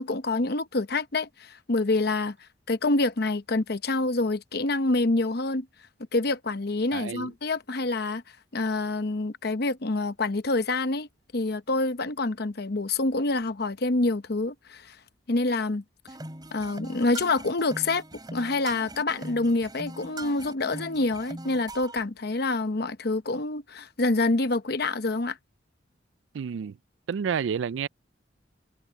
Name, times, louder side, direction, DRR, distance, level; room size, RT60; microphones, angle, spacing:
voice 1, 0.0-2.4 2.7-5.7 6.1-8.2 8.5-11.1 11.3-15.0 15.3-15.8 16.5-18.0 18.3-25.4, left 2 dB, 55° left, 0.9 m, -27 dB
voice 2, 6.9-7.3 26.3-26.8 27.1-27.9, right 7 dB, 80° right, 0.3 m, -29 dB
sound 1, 16.1-22.0, right 1 dB, 20° right, 3.9 m, -41 dB
head